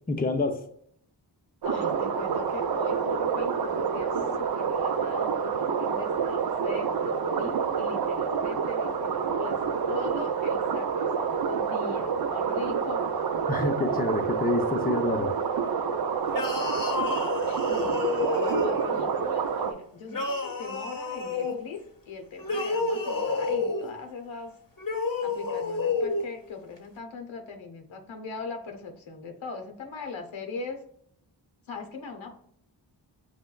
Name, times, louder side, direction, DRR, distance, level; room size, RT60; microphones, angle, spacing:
voice 1, 0.1-0.6 13.5-15.4, left 2 dB, 20° left, 4 dB, 0.6 m, -27 dB
voice 2, 1.6-9.6 9.9-13.0 17.5-24.6 25.2-30.8 31.7-32.4, left 4 dB, 75° left, 4 dB, 0.8 m, -40 dB
sound 1, 1.6-19.7, right 6 dB, 55° right, 0.5 m, -28 dB
sound 2, 16.3-19.0 20.1-21.6 22.4-23.9 24.8-26.3, left 3 dB, 45° left, 0.8 m, -29 dB
6.1 x 2.1 x 2.2 m, 0.67 s
cardioid pair, 40°, 47 cm